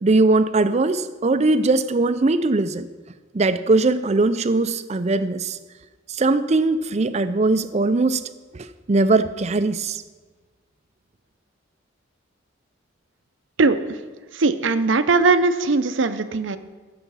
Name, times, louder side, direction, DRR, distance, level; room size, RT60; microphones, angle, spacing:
voice 1, 0.0-2.9 3.3-5.6 6.1-8.2 8.5-10.0, right 3 dB, 35° right, 13 dB, 0.5 m, -20 dB
voice 2, 14.3-16.6, right 3 dB, 70° right, 12 dB, 0.7 m, -19 dB
14.5 x 7.0 x 5.6 m, 1.3 s
head